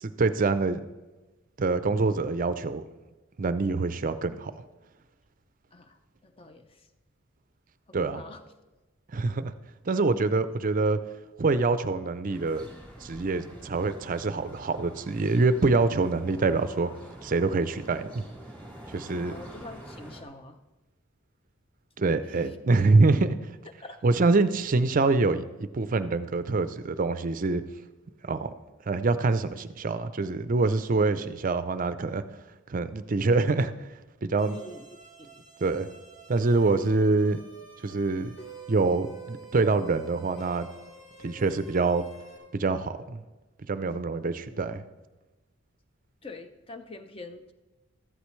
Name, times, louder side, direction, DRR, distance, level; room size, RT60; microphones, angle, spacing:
voice 1, 0.0-0.8 1.6-2.8 3.4-4.5 7.9-8.2 9.1-9.5 9.9-11.0 11.4-12.7 13.0-16.9 17.2-18.3 18.9-19.3 22.0-23.4 24.0-27.6 28.2-28.5 28.9-32.2 32.7-33.7 34.2-34.6 35.6-35.9 36.3-37.4 37.8-38.3 38.7-40.7 41.2-42.0 42.5-43.2 43.7-44.8, right 3 dB, 40° right, 12 dB, 0.5 m, -25 dB
voice 2, 5.7-6.9 7.9-8.4 19.2-20.6 22.4-22.6 23.8-24.0 34.5-34.9 35.2-35.5 46.2-47.5, left 2 dB, 25° left, 8 dB, 0.6 m, -45 dB
sound 1, 12.3-20.2, right 1 dB, 5° left, 2.1 m, -46 dB
sound 2, 34.4-42.4, right 4 dB, 50° left, 3.8 m, -48 dB
14.0 x 11.5 x 3.2 m, 1.1 s
head